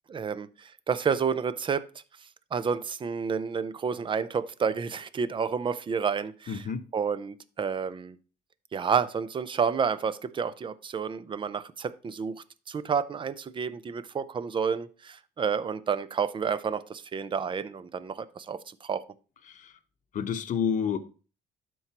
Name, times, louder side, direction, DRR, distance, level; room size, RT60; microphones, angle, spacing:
voice 1, 0.1-1.9 2.5-6.6 6.9-8.2 8.7-19.0, right 6 dB, 30° right, 0.5 m, -30 dB
voice 2, 6.5-6.9 19.5-19.7 20.1-21.0, left 7 dB, 50° left, 0.9 m, -29 dB
12.5 x 4.6 x 2.9 m
cardioid pair, 110°, 17 cm